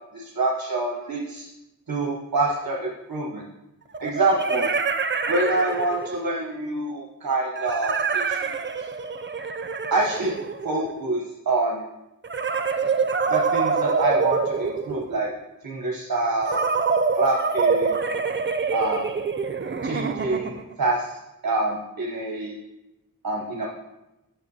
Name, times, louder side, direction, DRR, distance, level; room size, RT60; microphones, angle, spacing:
voice 1, 0.1-1.5 1.9-3.4 4.0-4.7 5.3-8.6 9.9-10.4 10.6-11.8 13.3-15.3 15.6-16.6 17.1-18.0 18.7-19.1 19.8-22.6 23.2-23.7, right 2 dB, 80° right, -2 dB, 1.0 m, -26 dB
sound 1, 2.5-2.6 3.9-6.3 7.6-11.0 12.2-15.3 16.5-20.7, right 5 dB, 35° right, 0.5 m, -26 dB
9.1 x 6.3 x 2.8 m, 0.95 s
wide cardioid pair, 45°, 35 cm